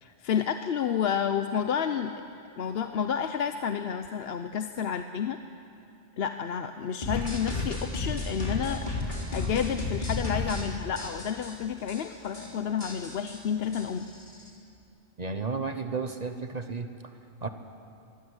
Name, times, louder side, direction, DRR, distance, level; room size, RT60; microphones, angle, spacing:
voice 1, 0.0-2.1 2.6-5.4 6.2-8.9 9.3-14.1, left 8 dB, 65° left, 8 dB, 0.9 m, -30 dB
sound 1, 7.0-10.6 11.0-11.5 11.9-12.0 12.2-12.5 12.8-14.5, left 3 dB, 40° left, 3.5 m, -33 dB
voice 2, 15.2-16.9 17.4-17.5, right 4 dB, 40° right, 7 dB, 1.0 m, -32 dB
23.0 x 15.5 x 8.1 m, 2.7 s
omnidirectional pair, 1.2 m